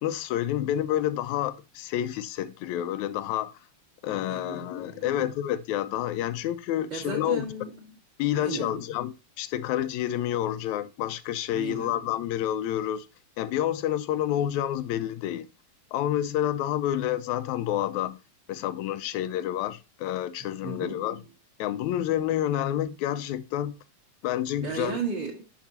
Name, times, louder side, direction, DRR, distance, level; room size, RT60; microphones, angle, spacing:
voice 1, 0.0-3.6 4.0-7.5 8.2-13.1 13.4-15.5 15.9-18.2 18.5-21.2 21.6-23.8 24.2-25.0, left 12 dB, 85° left, 1.9 m, -29 dB
voice 2, 4.1-5.3 6.9-8.0 8.3-8.9 11.5-12.0 20.6-21.2 24.6-25.4, right 5 dB, 45° right, 2.0 m, -36 dB
10.5 x 5.7 x 2.8 m
omnidirectional pair, 3.3 m